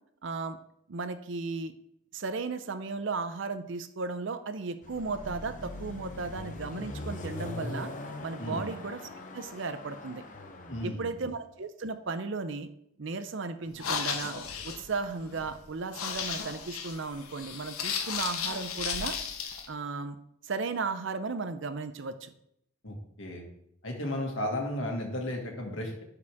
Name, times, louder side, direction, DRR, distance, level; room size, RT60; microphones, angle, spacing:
voice 1, 0.2-0.6 0.9-1.7 2.1-7.9 8.2-10.2 10.8-12.7 13.0-14.3 14.6-19.2 19.7-20.2 20.4-22.3, right 4 dB, 60° right, 10 dB, 0.6 m, -35 dB
Car passing by / Accelerating revving vroom, 4.8-10.9, left 2 dB, 35° left, 0.8 m, -41 dB
voice 2, 8.4-8.7 10.7-11.1 22.8-23.4 23.8-26.0, left 1 dB, 60° left, 1 dB, 1.9 m, -34 dB
sound 1, 13.7-19.7, left 6 dB, 85° left, 0.9 m, -35 dB
11.0 x 4.9 x 3.5 m, 0.74 s
head